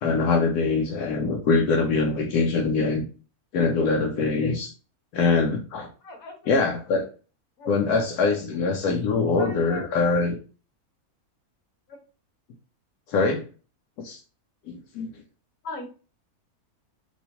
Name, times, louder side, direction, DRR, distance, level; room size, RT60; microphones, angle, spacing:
voice 1, 0.0-3.0 3.5-4.7 5.1-5.9 6.5-7.1 7.7-10.4 13.1-13.4 14.0-14.2 14.7-15.1, left 4 dB, 85° left, 2 dB, 1.1 m, -23 dB
voice 2, 6.0-6.3 7.6-8.0 9.4-9.8 11.9-12.0 15.6-15.8, left 2 dB, 65° left, 3 dB, 1.3 m, -38 dB
3.1 x 2.7 x 2.7 m, 0.35 s
omnidirectional pair, 1.6 m